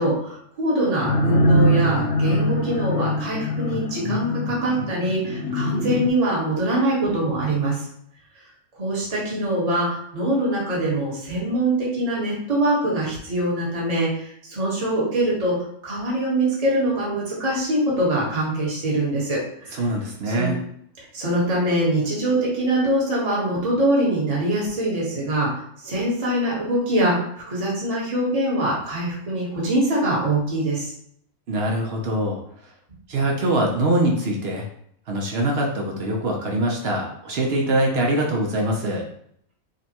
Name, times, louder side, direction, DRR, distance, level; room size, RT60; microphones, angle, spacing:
voice 1, 0.0-7.9 8.8-19.8 20.2-20.5 21.0-27.2 27.5-30.9, right 1 dB, 30° right, -5 dB, 1.1 m, -23 dB
sound 1, 1.1-6.1, equal, 55° left, 0.7 m, -22 dB
voice 2, 19.7-20.6 31.5-32.4 33.1-34.6 35.1-39.1, right 1 dB, 60° right, 0 dB, 0.7 m, -23 dB
5.1 x 2.2 x 2.8 m, 0.68 s
omnidirectional pair, 1.5 m